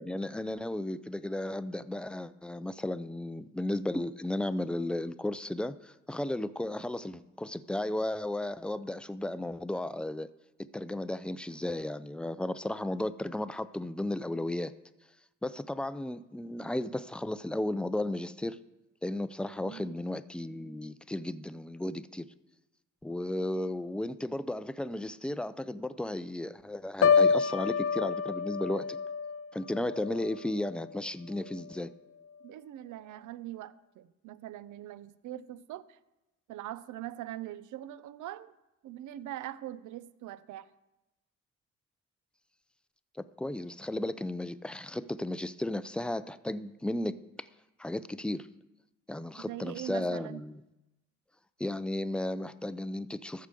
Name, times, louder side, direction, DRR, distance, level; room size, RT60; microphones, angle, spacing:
voice 1, 0.0-10.3 10.7-14.7 15.4-18.6 19.0-22.3 23.0-29.0 29.5-31.9 43.4-47.5 47.8-48.5 49.1-50.5 51.6-53.5, left 1 dB, 5° left, 14 dB, 0.4 m, -34 dB
voice 2, 19.6-20.0 32.4-36.0 36.5-38.5 38.8-40.7 49.4-50.4, right 13 dB, 80° right, 16 dB, 0.6 m, -42 dB
Piano, 27.0-31.0 31.4-31.7, left 6 dB, 45° left, 0.6 m, -28 dB
14.0 x 4.8 x 7.0 m, 0.99 s
cardioid pair, 90°, 30 cm